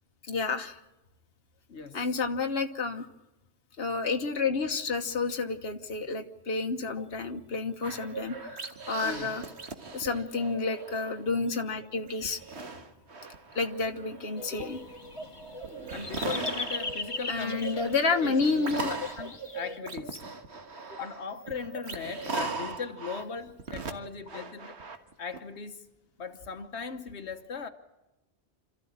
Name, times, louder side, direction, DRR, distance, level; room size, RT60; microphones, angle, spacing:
voice 1, 0.3-0.8 1.9-3.1 3.8-9.4 9.9-12.4 13.5-14.8 17.3-18.9, left 4 dB, 65° left, 1.4 m, -30 dB
voice 2, 1.7-2.2 9.0-9.4 15.9-18.6 19.2-20.2 21.0-24.8 25.2-25.9 26.2-27.7, left 5 dB, 80° left, 1.4 m, -39 dB
sound 1, 7.8-11.3 11.7-25.4, right 4 dB, 80° right, 1.8 m, -40 dB
sound 2, 14.4-19.8, left 2 dB, 30° left, 1.2 m, -39 dB
27.0 x 14.0 x 8.7 m
omnidirectional pair, 1.1 m